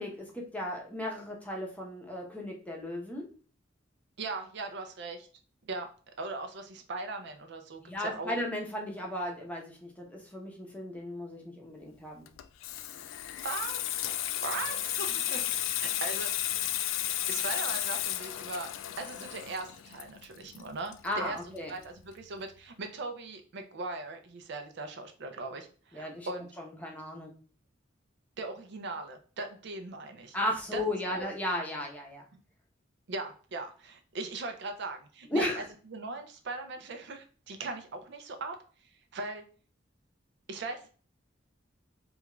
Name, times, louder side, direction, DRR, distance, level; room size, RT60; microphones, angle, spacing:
voice 1, 0.0-3.2 7.8-12.2 21.0-21.7 25.9-26.3 26.6-27.3 30.3-32.2 35.3-35.7, left 1 dB, 10° left, -1 dB, 0.7 m, -35 dB
voice 2, 4.2-5.3 5.7-5.9 6.2-8.3 13.4-16.3 17.3-18.7 19.0-21.4 21.7-26.5 28.4-30.4 30.7-31.3 33.1-38.6 39.1-39.4 40.5-40.9, right 3 dB, 60° right, 6 dB, 0.5 m, -39 dB
Water tap faucet / Sink (filling or washing), 12.3-21.6 21.9-22.1, left 12 dB, 90° left, 0.3 m, -33 dB
3.4 x 2.3 x 3.0 m, 0.40 s
head